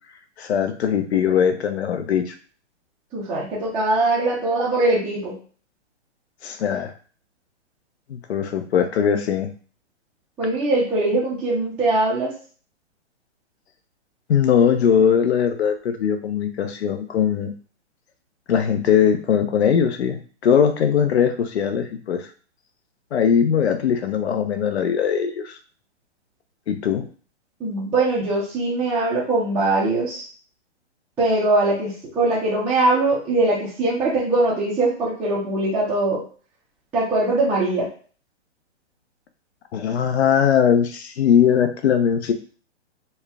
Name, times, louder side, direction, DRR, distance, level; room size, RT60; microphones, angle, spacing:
voice 1, 0.4-2.4 6.4-6.9 8.1-9.5 14.3-17.5 18.5-22.3 23.1-25.6 26.7-27.0 39.7-42.3, left 8 dB, 65° left, 7 dB, 0.8 m, -20 dB
voice 2, 3.1-5.3 10.4-12.3 27.6-30.3 31.2-36.2 36.9-37.9, right 2 dB, 5° right, -10 dB, 0.5 m, -21 dB
4.4 x 2.2 x 3.5 m, 0.41 s
hypercardioid pair, 150°, 35 cm